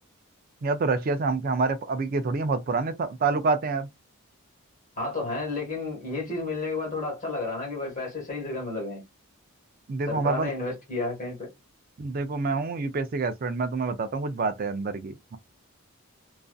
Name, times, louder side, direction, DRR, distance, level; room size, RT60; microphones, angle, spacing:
voice 1, 0.6-3.9 9.9-10.5 12.0-15.4, right 4 dB, 40° right, 0.3 m, -27 dB
voice 2, 5.0-9.0 10.1-11.5, left 3 dB, 35° left, 1.3 m, -31 dB
2.5 x 2.4 x 2.2 m
head